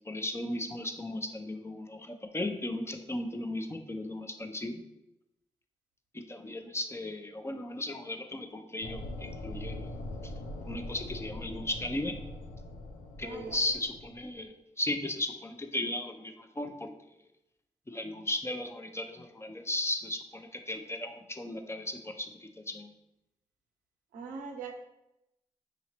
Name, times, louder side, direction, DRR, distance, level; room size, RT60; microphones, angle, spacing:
voice 1, 0.0-4.8 6.1-9.9 10.2-10.3 10.6-12.1 13.2-16.9 17.9-22.9, left 1 dB, 20° left, 5 dB, 0.6 m, -36 dB
sound 1, 8.8-14.4, left 1 dB, 80° left, 0.5 m, -42 dB
voice 2, 13.2-13.6 24.1-24.7, right 5 dB, 85° right, 2 dB, 0.5 m, -41 dB
4.8 x 2.9 x 2.9 m, 0.88 s
supercardioid pair, 40°, 14 cm